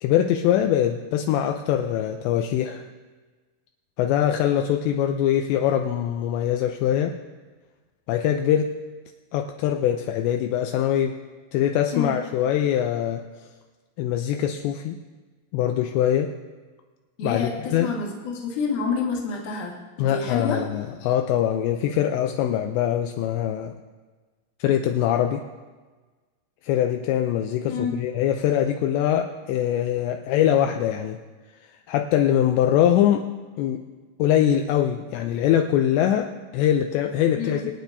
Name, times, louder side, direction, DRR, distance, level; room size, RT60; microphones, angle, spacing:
voice 1, 0.0-2.8 4.0-7.2 8.1-8.7 9.3-11.2 11.5-13.2 14.0-15.0 15.5-16.3 17.2-17.4 17.7-17.9 20.0-23.7 24.6-25.4 26.6-31.2 31.9-33.3 33.6-33.8 34.2-37.6, left 10 dB, 80° left, 4 dB, 2.7 m, -23 dB
voice 2, 17.2-20.6 27.7-28.0 37.3-37.7, left 5 dB, 55° left, -2 dB, 2.7 m, -28 dB
25.5 x 9.0 x 2.7 m, 1.3 s
omnidirectional pair, 5.2 m